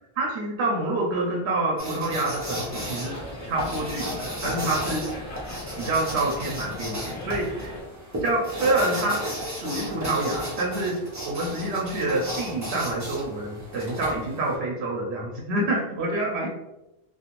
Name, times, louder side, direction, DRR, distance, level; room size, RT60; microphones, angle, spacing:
voice 1, 0.2-3.2 3.4-5.2 5.8-7.8 8.2-9.2 9.5-16.5, right 2 dB, 90° right, -2 dB, 0.9 m, -27 dB
sound 1, 1.8-14.6, equal, 20° right, 0.7 m, -34 dB
sound 2, 2.7-7.8, left 1 dB, 40° left, 0.7 m, -39 dB
2.4 x 2.3 x 2.9 m, 0.95 s
omnidirectional pair, 1.1 m